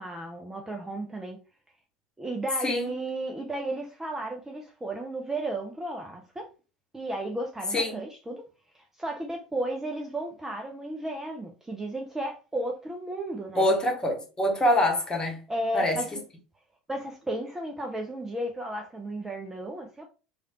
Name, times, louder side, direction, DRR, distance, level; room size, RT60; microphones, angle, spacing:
voice 1, 0.0-1.4 2.2-6.5 6.9-8.4 8.7-13.7 15.5-16.1 16.9-20.0, right 1 dB, 10° right, 0.5 m, -34 dB
voice 2, 13.6-15.4 15.7-16.0, left 1 dB, 20° left, 1.2 m, -24 dB
3.1 x 2.4 x 2.9 m
figure-of-eight pair, 70°, 4 cm